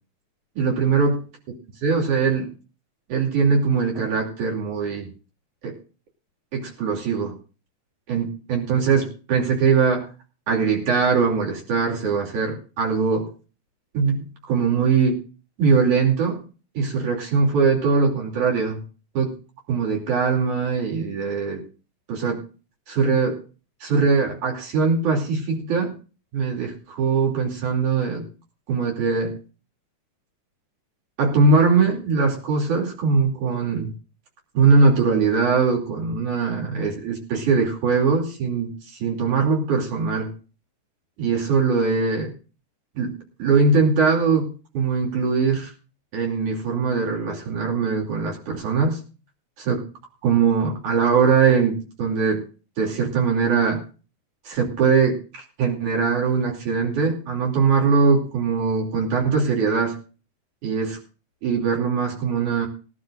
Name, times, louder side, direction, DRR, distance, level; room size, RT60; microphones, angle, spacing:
voice 1, 0.6-1.2 1.8-2.5 3.1-5.1 5.6-5.7 6.5-7.3 8.1-10.1 10.5-13.3 13.9-15.2 15.6-16.4 16.8-18.8 19.1-19.3 19.7-21.6 22.1-22.4 22.9-23.4 23.8-25.9 26.3-28.3 28.7-29.3 31.2-33.9 34.5-40.3 41.2-42.3 43.0-43.1 43.4-45.7 46.1-49.0 49.6-49.8 50.2-52.4 52.8-53.8 54.5-60.0 60.6-61.0 61.4-62.7, right 5 dB, 85° right, 0 dB, 4.2 m, -21 dB
21.0 x 11.5 x 2.5 m, 0.34 s
omnidirectional pair, 3.4 m